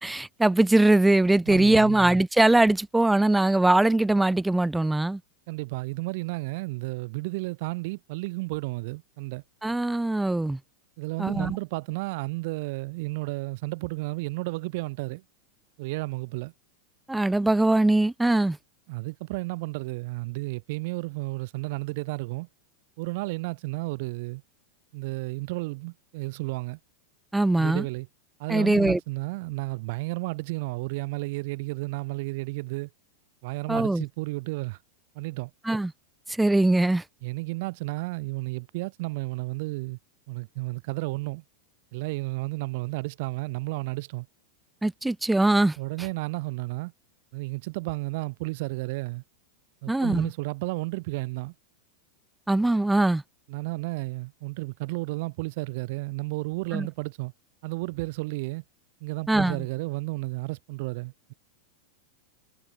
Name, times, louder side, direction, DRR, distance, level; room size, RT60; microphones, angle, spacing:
voice 1, 0.0-5.2 9.6-10.6 11.2-11.6 17.1-18.6 27.3-27.9 28.5-29.0 33.7-34.0 35.7-35.9 36.3-37.0 44.8-45.8 49.9-50.3 52.5-53.2 56.7-56.9 59.3-59.6, right 2 dB, 5° right, 0.4 m, -21 dB
voice 2, 1.5-2.0 5.5-9.4 11.0-15.2 15.8-16.5 18.9-22.5 23.0-24.4 24.9-26.8 27.6-28.1 28.4-32.9 33.4-34.8 35.1-35.5 37.2-40.0 40.3-41.4 41.9-44.3 45.8-46.9 47.3-49.2 49.8-51.5 53.5-57.3 57.6-58.6 59.0-61.3, right 24 dB, 60° right, 2.7 m, -32 dB
hypercardioid pair, 115°, 0 cm